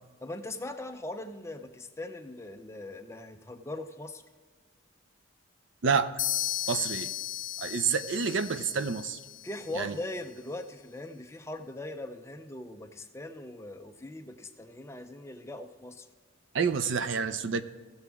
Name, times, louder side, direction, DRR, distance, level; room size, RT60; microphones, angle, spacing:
voice 1, 0.2-4.2 9.4-16.1, left 2 dB, 15° left, 6 dB, 0.5 m, -40 dB
sound 1, 6.2-9.9, left 15 dB, 70° left, 0.5 m, -35 dB
voice 2, 6.7-7.1 7.6-9.2 9.7-10.0 16.5-17.6, right 5 dB, 65° right, 12 dB, 0.5 m, -28 dB
16.0 x 7.1 x 3.5 m, 1.5 s
head